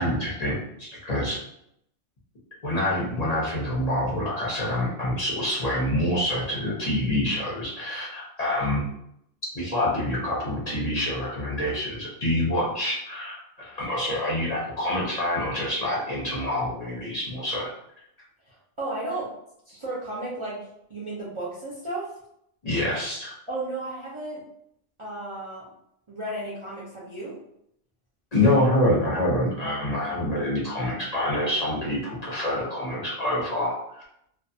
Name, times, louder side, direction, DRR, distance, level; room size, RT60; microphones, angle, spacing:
voice 1, 0.0-1.4 2.6-8.8 9.5-17.7 19.7-19.8 22.6-23.3 28.3-34.0, left 1 dB, 40° left, -6 dB, 0.6 m, -26 dB
voice 2, 18.5-19.3 19.8-20.6 20.9-22.1 23.5-24.4 25.0-25.6 26.1-27.4, right 2 dB, 40° right, -8 dB, 0.5 m, -33 dB
2.4 x 2.3 x 2.7 m, 0.76 s
omnidirectional pair, 1.2 m